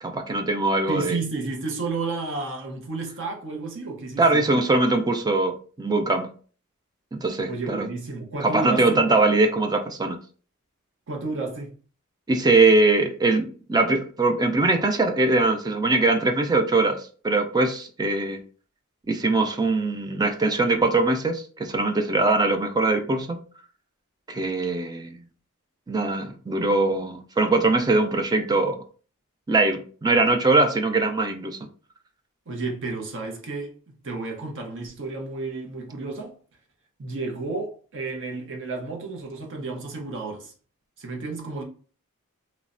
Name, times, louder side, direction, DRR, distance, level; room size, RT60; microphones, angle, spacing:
voice 1, 0.0-1.2 4.2-6.3 7.1-7.8 8.4-10.2 12.3-18.4 19.1-23.4 24.3-25.2 25.9-28.8 29.5-31.6, right 2 dB, 20° right, 0.3 m, -22 dB
voice 2, 0.9-4.4 7.5-9.0 11.1-11.8 32.5-33.8 34.0-36.3 37.0-40.5 41.0-41.6, right 3 dB, 60° right, 0.7 m, -32 dB
3.0 x 2.0 x 2.5 m
head